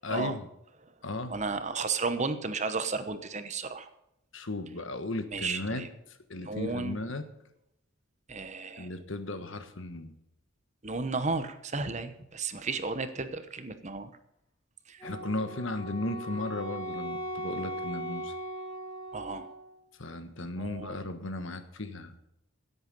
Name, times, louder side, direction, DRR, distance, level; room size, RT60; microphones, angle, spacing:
voice 1, 0.0-0.5 1.0-1.4 4.3-5.8 6.3-7.2 8.8-10.2 15.0-18.3 20.0-22.1, left 2 dB, 65° left, 9 dB, 1.4 m, -35 dB
voice 2, 1.3-3.9 5.3-5.9 6.3-7.0 8.3-8.9 10.8-14.1 14.9-15.0 19.1-19.5 20.6-21.0, right 4 dB, 35° right, 10 dB, 1.0 m, -33 dB
Wind instrument woodwind instrument, 15.0-19.8, equal, 20° left, 4.3 m, -38 dB
16.5 x 8.1 x 5.4 m, 0.81 s
head